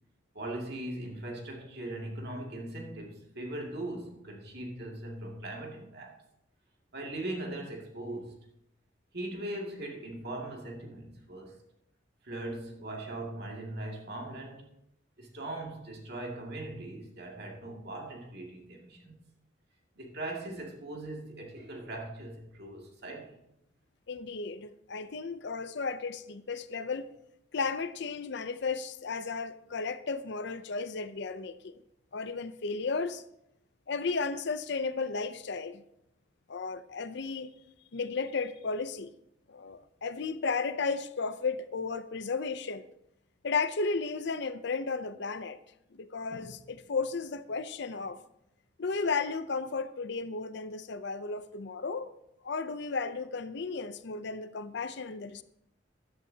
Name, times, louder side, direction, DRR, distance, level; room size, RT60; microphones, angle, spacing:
voice 1, 0.3-6.2 6.9-8.4 9.1-11.6 12.2-14.7 15.2-19.1 20.0-23.4, right 1 dB, 60° right, 2.3 m, -40 dB
voice 2, 24.1-27.1 27.5-31.8 32.1-33.2 33.9-35.8 36.5-37.5 37.9-39.1 39.5-42.9 43.4-45.6 45.9-48.2 48.8-52.1 52.4-55.4, left 4 dB, 65° left, 0.6 m, -34 dB
13.5 x 11.0 x 2.8 m
head